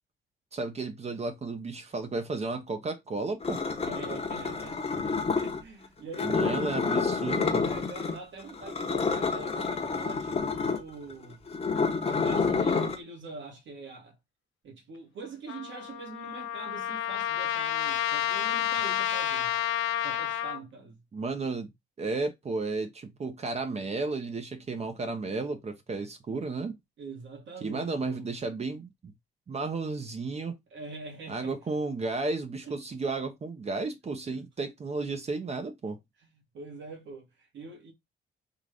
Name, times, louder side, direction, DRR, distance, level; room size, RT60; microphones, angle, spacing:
voice 1, 0.5-3.6 6.2-7.7 21.1-21.7 22.0-26.8 27.6-29.1 29.5-30.6 31.3-36.0, right 3 dB, 35° right, 0.6 m, -33 dB
sound 1, 3.4-5.6 6.1-8.2 8.5-13.0, left 4 dB, 30° left, 0.9 m, -29 dB
voice 2, 3.8-7.1 7.6-11.5 12.1-14.2 14.6-19.6 20.0-21.0 27.0-28.3 30.7-31.6 32.7-32.8 34.3-34.4 36.2-37.9, right 3 dB, 70° right, 1.8 m, -44 dB
Trumpet, 15.5-20.6, left 11 dB, 90° left, 0.6 m, -30 dB
3.8 x 2.4 x 3.3 m
cardioid pair, 90°, 20 cm